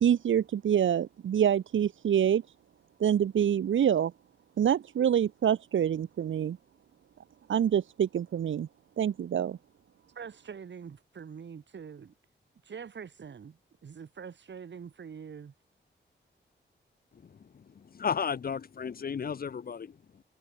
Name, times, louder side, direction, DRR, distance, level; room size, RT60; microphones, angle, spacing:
voice 1, 0.0-2.4 3.0-4.1 4.6-6.6 7.5-8.7 9.0-9.6, right 9 dB, 90° right, 0.8 m, -26 dB
voice 2, 10.2-12.1 12.6-15.5, right 6 dB, 70° right, 7.1 m, -44 dB
voice 3, 17.1-20.2, left 6 dB, 50° left, 0.8 m, -35 dB
wide cardioid pair, 150°, 20 cm